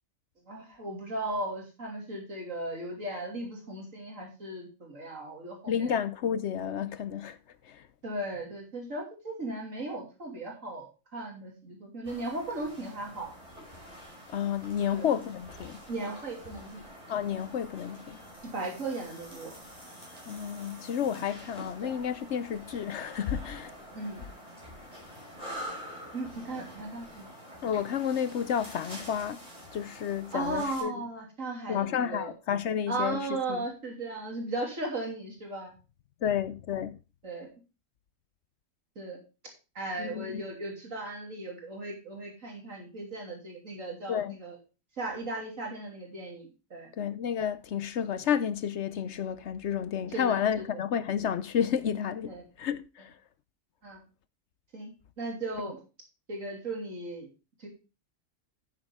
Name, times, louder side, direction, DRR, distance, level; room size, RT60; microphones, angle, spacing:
voice 1, 0.5-5.9 8.0-10.9 11.1-13.3 14.8-15.1 15.9-16.9 18.5-19.5 23.9-24.2 26.1-27.3 30.3-32.3 32.9-35.7 37.2-37.5 38.9-39.2 39.7-44.6 45.0-46.9 50.1-50.7 52.3-52.4 53.8-54.0 54.7-54.9 55.2-55.8 56.3-57.3 57.6-57.7, right 2 dB, 75° right, 3.3 m, -36 dB
voice 2, 5.7-7.4 7.7-7.8 14.3-15.8 17.1-18.2 20.3-23.7 27.6-29.4 29.7-30.9 31.7-33.2 33.5-33.7 36.2-37.0 40.0-40.4 44.1-44.4 47.0-53.1, left 8 dB, 65° left, 0.9 m, -31 dB
sound 1, 12.0-30.8, equal, 30° right, 5.8 m, -46 dB
11.5 x 8.1 x 3.5 m
omnidirectional pair, 1.4 m